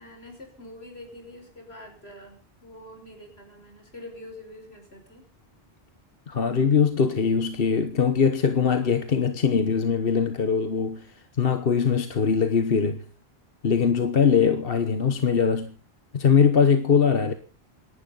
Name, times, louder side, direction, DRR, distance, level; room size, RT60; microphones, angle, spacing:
voice 1, 0.0-5.2, left 1 dB, 85° left, 5.8 m, -45 dB
voice 2, 6.3-13.0 13.6-15.7 16.1-17.3, left 6 dB, 65° left, 1.3 m, -22 dB
27.0 x 11.5 x 3.9 m
omnidirectional pair, 1.0 m